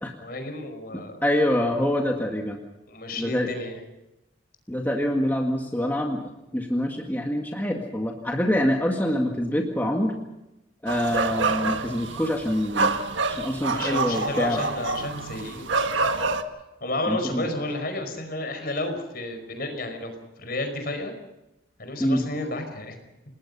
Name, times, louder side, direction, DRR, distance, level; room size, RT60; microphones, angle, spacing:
voice 1, 0.2-1.2 2.9-3.8 13.7-16.1 16.8-20.1 20.4-21.2 21.8-23.0, left 2 dB, 50° left, 7 dB, 5.1 m, -32 dB
voice 2, 1.2-2.6 3.2-3.7 4.7-10.1 10.8-13.0 13.3-14.6 17.0-17.5 22.0-22.3, left 1 dB, 10° left, 0 dB, 1.8 m, -25 dB
sound 1, 10.9-16.4, right 3 dB, 70° right, 1.6 m, -27 dB
29.0 x 19.5 x 5.6 m, 0.94 s
head